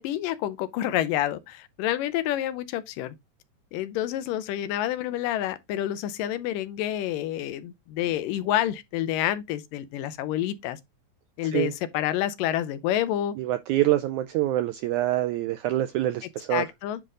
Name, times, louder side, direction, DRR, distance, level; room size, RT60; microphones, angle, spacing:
voice 1, 0.0-3.2 3.7-10.8 11.4-13.3 16.5-17.0, left 12 dB, 80° left, 2.2 m, -28 dB
voice 2, 13.4-16.6, right 14 dB, 85° right, 1.7 m, -25 dB
10.0 x 3.4 x 3.7 m
omnidirectional pair, 4.0 m